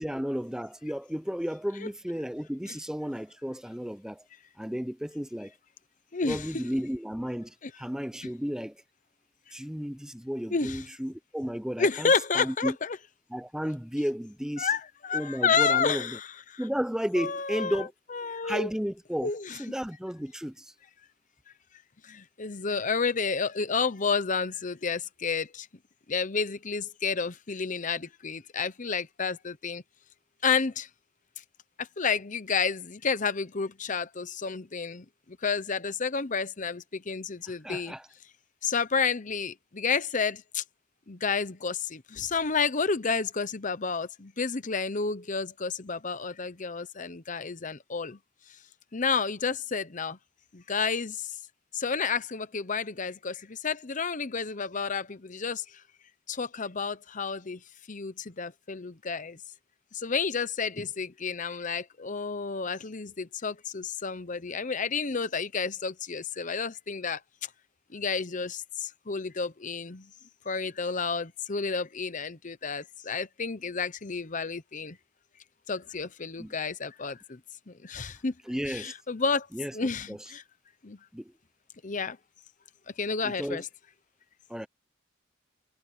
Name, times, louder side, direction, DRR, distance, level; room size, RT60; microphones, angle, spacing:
voice 1, 0.0-4.3 4.6-5.5 6.3-8.8 9.5-12.7 13.3-14.7 15.1-16.2 16.6-17.9 18.4-19.3 19.6-20.7 37.5-38.1 76.4-76.5 78.5-78.9 79.5-79.7 80.1-80.3 81.1-81.3 83.2-83.6 84.5-84.7, equal, 5° right, 0.6 m, -33 dB
voice 2, 6.1-6.4 7.6-7.7 10.5-10.8 11.8-13.0 14.6-16.6 17.2-17.8 18.1-18.7 19.2-19.6 22.0-25.7 26.1-29.8 30.4-30.9 31.8-37.9 38.6-40.6 41.1-48.2 48.5-48.6 48.9-50.2 50.5-51.4 51.7-55.8 56.3-57.6 57.9-59.4 59.9-67.5 67.9-70.1 70.4-75.0 75.7-77.4 77.7-78.3 78.7-79.5 79.7-80.4 80.8-81.0 81.8-82.2 82.9-83.7, left 5 dB, 40° left, 0.9 m, -30 dB
head